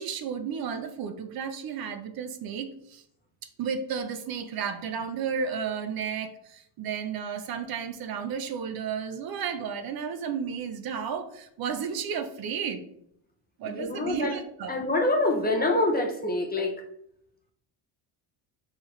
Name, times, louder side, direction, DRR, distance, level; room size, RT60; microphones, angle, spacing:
voice 1, 0.0-3.0 3.6-12.8 13.6-14.8, right 7 dB, 50° right, 8 dB, 0.5 m, -33 dB
voice 2, 13.7-14.4 14.7-16.7, left 2 dB, 20° left, 2 dB, 0.4 m, -26 dB
4.4 x 3.3 x 3.0 m, 0.72 s
cardioid pair, 130°, 47 cm